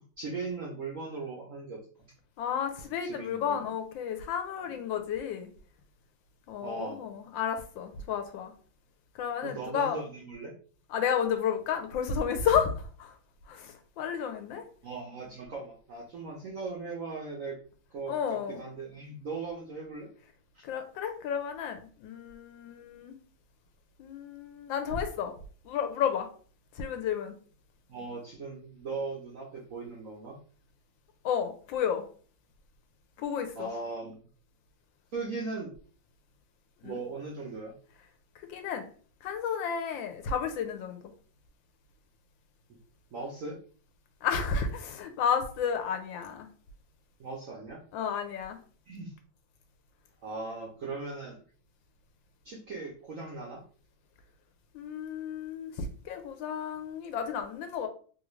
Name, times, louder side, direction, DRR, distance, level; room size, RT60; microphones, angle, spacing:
voice 1, 0.2-2.1 3.0-3.7 4.7-4.8 6.6-7.0 9.4-10.5 14.8-17.6 17.9-20.1 20.5-20.6 27.9-30.4 33.6-34.3 35.1-35.7 36.8-37.7 43.1-43.6 47.2-47.8 48.9-49.1 50.2-51.4 52.4-53.6, right 3 dB, 70° right, -3 dB, 0.8 m, -39 dB
voice 2, 2.4-5.5 6.5-8.5 9.2-10.0 10.9-13.2 13.5-14.6 18.1-18.6 20.6-23.2 24.0-25.3 25.6-26.3 26.7-27.3 31.2-32.0 33.2-33.7 36.8-37.0 38.5-38.9 39.2-41.0 44.2-46.5 47.9-48.6 54.7-57.9, left 7 dB, 75° left, 6 dB, 1.3 m, -32 dB
3.3 x 2.4 x 3.1 m, 0.42 s
omnidirectional pair, 2.2 m